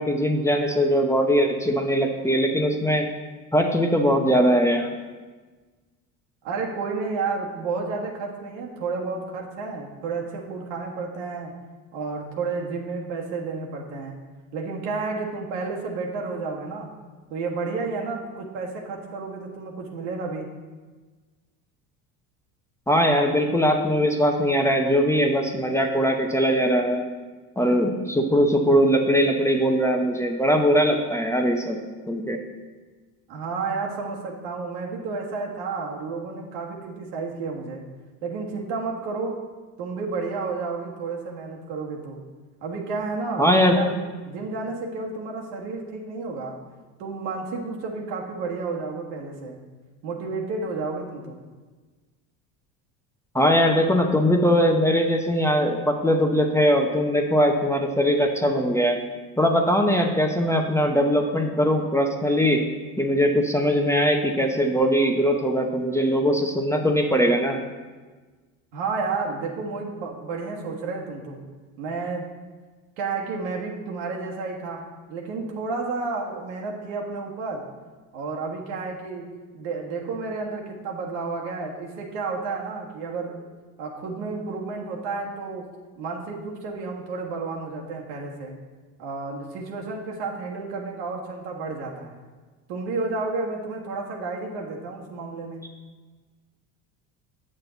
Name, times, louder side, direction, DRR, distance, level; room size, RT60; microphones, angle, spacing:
voice 1, 0.0-3.1 3.5-4.9 22.9-27.0 27.6-31.8 32.1-32.4 43.4-43.8 53.3-59.0 59.4-62.6 63.0-67.6, equal, 5° left, 2 dB, 0.8 m, -21 dB
voice 2, 6.4-11.5 11.9-14.2 14.5-16.9 17.3-20.5 33.3-37.8 38.2-39.3 39.8-42.2 42.6-44.0 44.3-46.5 47.0-49.6 50.0-51.4 68.7-71.4 71.8-72.2 73.0-74.8 75.1-77.6 78.1-79.3 79.5-83.4 83.8-85.7 86.0-88.6 89.0-92.2 92.7-95.6, right 4 dB, 80° right, -1 dB, 1.6 m, -31 dB
8.1 x 6.5 x 4.0 m, 1.3 s
supercardioid pair, 85°, 44 cm